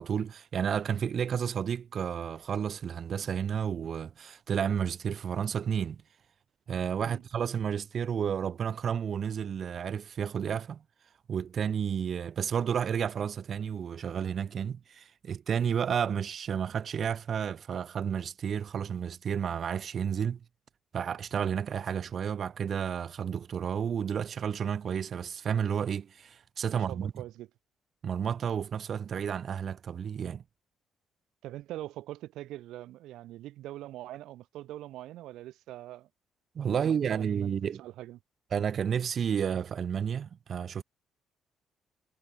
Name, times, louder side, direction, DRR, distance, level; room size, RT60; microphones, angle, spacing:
voice 1, 0.0-6.0 6.7-10.8 11.3-20.4 20.9-27.1 28.0-30.4 36.5-37.8 38.5-40.8, right 7 dB, 55° right, 1.3 m, -31 dB
voice 2, 26.7-27.5 31.4-36.1 36.7-38.2, right 15 dB, 90° right, 4.2 m, -43 dB
cardioid pair, 90°, 0 cm